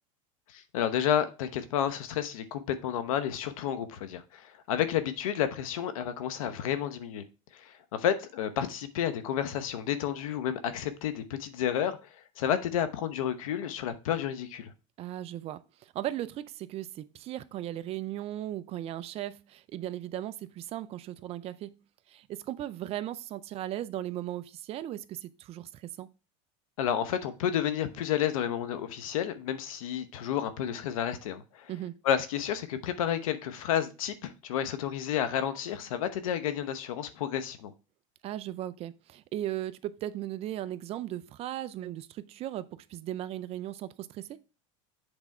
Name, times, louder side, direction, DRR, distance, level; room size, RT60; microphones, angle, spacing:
voice 1, 0.5-7.2 7.5-12.0 12.4-14.7 26.8-31.7 32.0-37.7, left 9 dB, 85° left, 0.9 m, -31 dB
voice 2, 15.0-21.8 22.1-26.1 31.7-32.0 38.2-44.4, right 13 dB, 35° right, 0.5 m, -37 dB
8.0 x 3.5 x 4.3 m
supercardioid pair, 125°, 17 cm